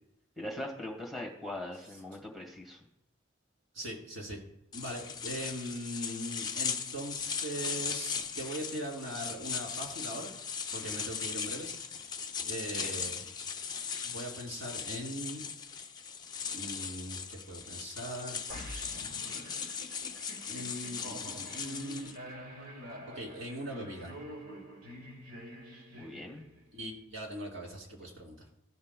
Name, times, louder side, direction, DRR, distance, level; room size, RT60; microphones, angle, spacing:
voice 1, 0.4-2.8 12.7-12.9 26.0-26.4, left 1 dB, ahead, -1 dB, 1.4 m, -41 dB
voice 2, 3.7-4.4 4.7-10.3 10.7-13.3 14.0-15.5 16.5-18.4 19.3-19.5 20.5-22.1 23.1-24.1 26.7-28.5, right 1 dB, 70° right, -2 dB, 2.6 m, -40 dB
sound 1, 4.7-22.2, left 6 dB, 20° left, 0.5 m, -38 dB
sound 2, 18.5-26.8, equal, 90° right, 1.6 m, -47 dB
15.5 x 5.4 x 2.2 m, 0.83 s
head